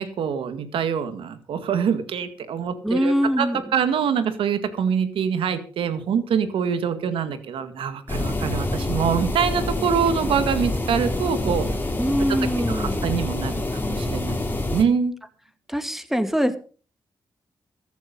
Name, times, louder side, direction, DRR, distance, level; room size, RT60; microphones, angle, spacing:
voice 1, 0.0-11.7 12.6-15.1, right 7 dB, 85° right, 11 dB, 2.0 m, -25 dB
voice 2, 2.8-3.6 12.0-13.0 15.7-16.6, equal, 5° right, 9 dB, 2.4 m, -23 dB
sound 1, 8.1-14.8, left 2 dB, 25° left, 3.6 m, -26 dB
14.5 x 11.5 x 5.4 m, 0.39 s
cardioid pair, 65°, 9 cm